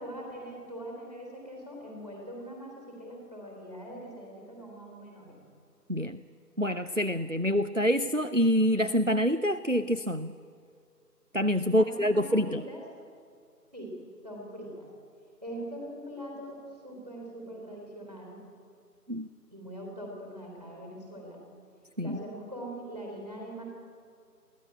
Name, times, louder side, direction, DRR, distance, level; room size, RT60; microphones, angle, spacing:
voice 1, 0.0-5.4 11.7-12.8 13.7-13.9 14.2-14.9 15.4-18.4 19.5-21.4 22.0-23.6, right 1 dB, 25° right, -1 dB, 3.8 m, -42 dB
voice 2, 6.6-10.3 11.3-12.6 19.1-19.3 22.0-22.2, equal, 50° right, 12 dB, 0.5 m, -26 dB
22.0 x 16.0 x 8.8 m, 2.3 s
figure-of-eight pair, 180°, 49 cm